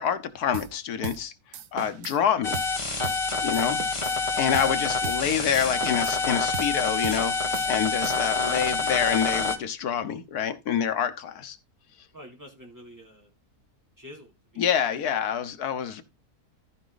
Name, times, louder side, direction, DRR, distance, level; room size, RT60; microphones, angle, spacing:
voice 1, 0.0-1.3 1.7-2.6 3.4-3.8 4.3-11.6 14.6-16.0, left 8 dB, 85° left, 1.5 m, -27 dB
sound 1, 0.5-0.8 1.0-1.3 1.5-2.2 2.5-2.8 3.0-3.3 3.5-4.2 4.5-4.8 5.0-5.3 5.5-6.2 6.5-6.8 7.0-7.3 7.5-8.4, right 8 dB, 65° right, 1.1 m, -38 dB
sound 2, 2.4-9.6, left 4 dB, 20° left, 1.3 m, -27 dB
voice 2, 5.8-6.2 12.1-13.3 14.0-14.7 15.0-15.2, equal, 10° right, 3.1 m, -46 dB
14.0 x 5.0 x 3.9 m
omnidirectional pair, 1.6 m